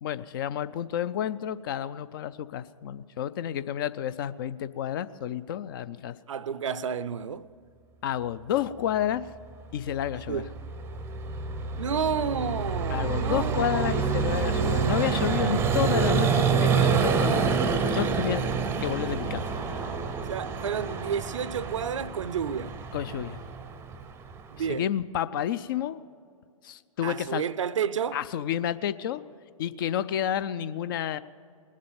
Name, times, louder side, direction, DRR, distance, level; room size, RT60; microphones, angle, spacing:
voice 1, 0.0-6.2 8.0-9.2 9.7-10.4 12.9-17.5 17.9-19.4 22.9-23.4 24.7-26.0 26.6-27.4 28.1-29.2 29.6-31.2, left 10 dB, 40° left, 0.4 m, -30 dB
voice 2, 6.3-7.5 10.3-10.5 11.8-14.0 20.3-22.8 24.5-24.9 27.0-28.2, right 7 dB, 60° right, 0.5 m, -31 dB
Vehicle, 10.0-24.7, right 5 dB, 15° right, 0.6 m, -27 dB
20.0 x 7.4 x 8.8 m
figure-of-eight pair, 115°, 18 cm